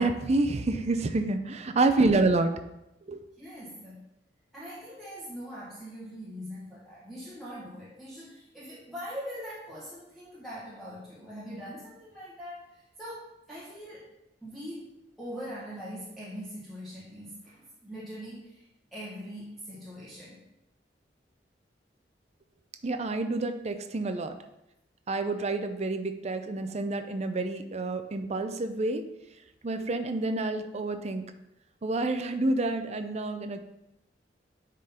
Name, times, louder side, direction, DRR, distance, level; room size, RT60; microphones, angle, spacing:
voice 1, 0.0-2.5 3.1-3.2 22.8-24.3 25.1-29.1 29.6-31.3 31.8-33.6, right 2 dB, 40° right, 7 dB, 0.5 m, -28 dB
voice 2, 3.4-4.1 4.5-14.1 14.4-14.9 15.2-20.4, equal, ahead, -11 dB, 1.6 m, -42 dB
9.8 x 3.9 x 4.2 m, 0.87 s
head